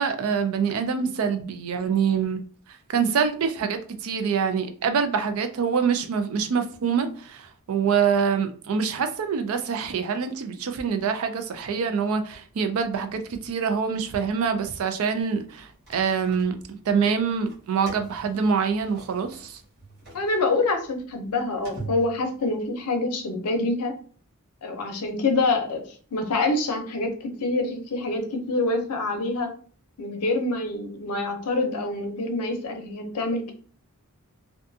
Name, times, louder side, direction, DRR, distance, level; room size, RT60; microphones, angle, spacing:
voice 1, 0.0-2.4 2.9-19.6, right 6 dB, 65° right, 0.4 m, -25 dB
sound 1, 15.5-16.9 17.4-22.7, right 2 dB, 45° right, 1.2 m, -43 dB
voice 2, 20.1-23.9 24.6-25.8 26.1-29.5 30.0-33.5, left 2 dB, 90° left, 0.6 m, -26 dB
2.5 x 2.2 x 2.6 m
head